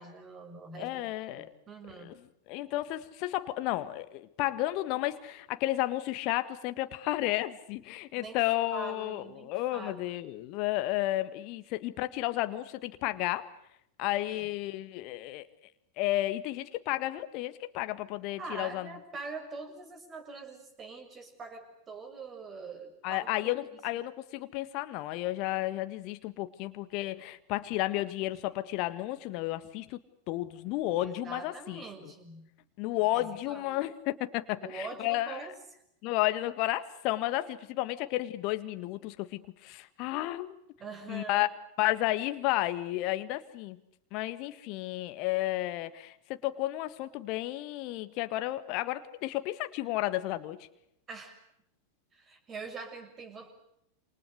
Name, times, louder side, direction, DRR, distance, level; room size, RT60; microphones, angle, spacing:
voice 1, 0.0-1.0 1.3-2.1 8.2-8.4 8.7-10.2 14.3-14.5 18.4-23.5 31.0-32.5 33.1-33.8 34.6-35.5 37.8-37.9 40.8-41.5 51.1-51.3 52.1-53.5, right 4 dB, 25° right, 7 dB, 6.7 m, -44 dB
voice 2, 0.8-1.5 2.5-13.5 14.0-15.5 16.0-18.9 23.0-30.0 30.3-32.1 32.8-35.5 36.0-40.6 41.1-41.5 41.8-43.8 44.1-50.6, left 16 dB, 40° left, 11 dB, 1.7 m, -32 dB
28.5 x 28.0 x 6.6 m, 0.76 s
figure-of-eight pair, 90°, 0 cm